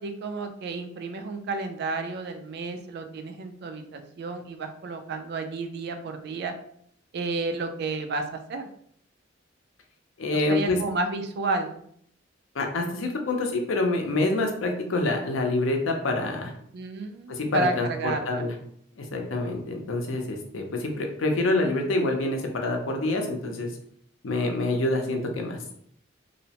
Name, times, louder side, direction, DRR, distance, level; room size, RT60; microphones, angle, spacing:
voice 1, 0.0-6.5 7.1-8.7 10.5-11.8 16.7-18.5, right 3 dB, 60° right, 6 dB, 0.4 m, -31 dB
voice 2, 10.2-10.8 12.5-16.5 17.3-18.5 19.0-23.7 24.2-25.6, left 2 dB, 80° left, 3 dB, 0.5 m, -26 dB
2.7 x 2.0 x 2.8 m, 0.67 s
head